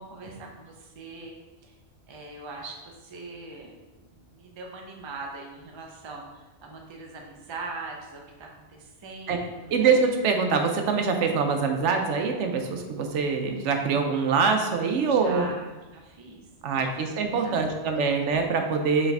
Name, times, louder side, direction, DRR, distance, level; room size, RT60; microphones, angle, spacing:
voice 1, 0.0-1.3 1.6-1.8 2.1-10.0 15.1-16.4 16.7-17.7, right 3 dB, 35° right, 0 dB, 0.5 m, -42 dB
voice 2, 9.7-15.5 16.6-19.1, right 5 dB, 85° right, 4 dB, 0.9 m, -24 dB
4.7 x 3.4 x 3.3 m, 1.2 s
omnidirectional pair, 1.2 m